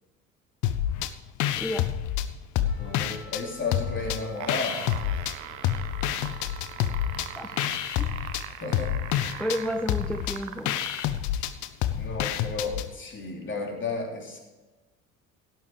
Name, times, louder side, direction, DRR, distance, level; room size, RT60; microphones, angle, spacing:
sound 1, 0.6-1.1 1.4-3.4 3.7-5.3 5.6-12.9, left 11 dB, 45° left, 0.9 m, -28 dB
voice 1, 1.6-1.9 7.4-7.6 8.0-8.1 9.4-10.7, equal, 5° left, 5 dB, 0.8 m, -31 dB
Wind instrument woodwind instrument, 2.6-7.8, right 1 dB, 30° right, 3.6 m, -50 dB
voice 2, 2.8-4.9 8.6-9.4 11.9-14.4, left 3 dB, 30° left, 1 dB, 3.4 m, -33 dB
sound 2, 4.2-11.2 12.0-12.1, right 11 dB, 65° right, 1.0 m, -40 dB
17.5 x 7.7 x 4.9 m, 1.2 s
figure-of-eight pair, 60°, 40 cm